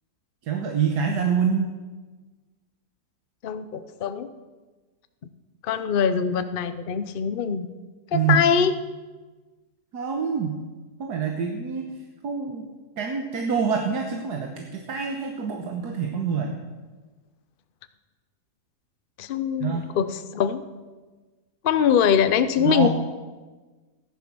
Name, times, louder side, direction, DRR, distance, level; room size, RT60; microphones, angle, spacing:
voice 1, 0.4-1.7 8.1-8.4 9.9-10.6 11.0-11.9 12.2-12.7 13.0-16.6 19.6-19.9 22.6-22.9, right 6 dB, 75° right, 3 dB, 1.6 m, -26 dB
voice 2, 3.4-4.3 5.6-7.7 8.1-8.8 19.2-20.6 21.6-22.9, left 7 dB, 50° left, 11 dB, 0.6 m, -23 dB
15.0 x 10.5 x 6.1 m, 1.3 s
omnidirectional pair, 1.8 m